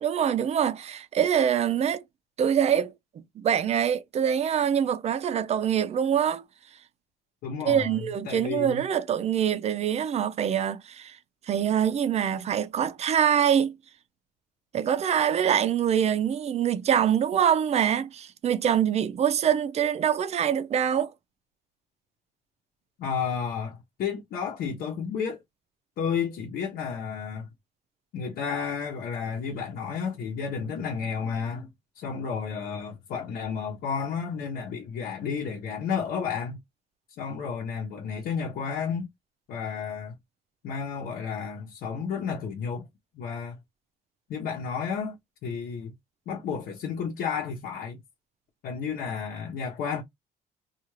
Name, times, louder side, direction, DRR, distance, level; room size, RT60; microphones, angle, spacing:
voice 1, 0.0-2.0 2.4-6.4 7.6-11.2 11.5-13.7 14.7-21.1, right 9 dB, 40° right, 0.5 m, -24 dB
voice 2, 7.4-8.8 23.0-25.4 26.0-27.5 28.1-31.7 31.9-36.6 37.2-39.1 39.5-40.1 40.6-42.9 43.1-43.6 44.3-45.2 45.4-45.9 46.3-48.0 48.6-50.0, left 6 dB, 70° left, 0.9 m, -32 dB
2.4 x 2.4 x 3.0 m
cardioid pair, 110°, 17 cm